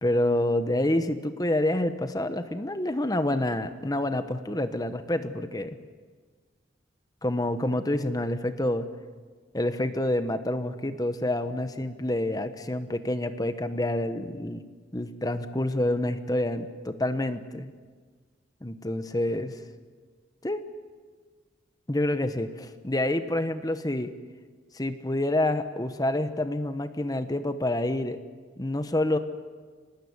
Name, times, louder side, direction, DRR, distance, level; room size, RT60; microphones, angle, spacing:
voice 1, 0.0-5.8 7.2-8.9 9.5-14.6 14.9-17.7 18.6-19.6 20.4-20.6 21.9-24.1 24.7-28.2 28.6-29.2, left 1 dB, 20° left, 10 dB, 1.1 m, -28 dB
24.5 x 20.0 x 9.6 m, 1.5 s
head